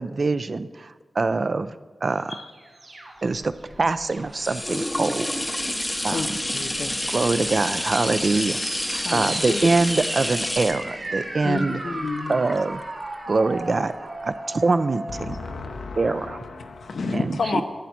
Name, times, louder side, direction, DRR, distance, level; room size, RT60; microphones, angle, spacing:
voice 1, 0.0-2.4 3.2-5.4 6.0-6.3 7.1-8.6 9.1-11.8 12.3-12.8 13.3-15.4 16.0-16.4 17.1-17.6, right 3 dB, 50° right, 12 dB, 0.4 m, -24 dB
sound 1, 2.3-4.5 5.1-5.7 7.4-15.6, right 1 dB, 75° right, 3.5 m, -36 dB
sound 2, 3.3-13.1 13.6-13.7, left 1 dB, 15° left, 0.6 m, -29 dB
voice 2, 6.1-7.1 9.0-9.7 11.4-12.4, left 3 dB, 60° left, 11 dB, 0.5 m, -31 dB
voice 3, 15.1-17.6, left 4 dB, 85° left, 5 dB, 0.8 m, -30 dB
11.5 x 8.1 x 4.4 m, 1.4 s
cardioid pair, 65°, 0 cm